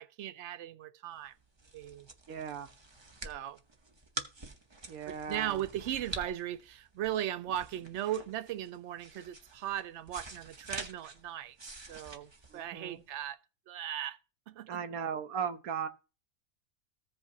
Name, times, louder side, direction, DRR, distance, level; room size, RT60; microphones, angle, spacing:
voice 1, 0.0-1.3 1.7-2.1 3.2-3.6 5.1-13.4 13.7-14.2 14.5-14.8, right 11 dB, 65° right, 0.8 m, -38 dB
sound 1, 1.3-13.2, right 2 dB, 25° right, 0.7 m, -47 dB
voice 2, 2.3-2.7 4.9-5.6 12.5-13.0 14.7-15.9, right 7 dB, 85° right, 1.3 m, -37 dB
15.0 x 5.2 x 2.8 m
omnidirectional pair, 1.5 m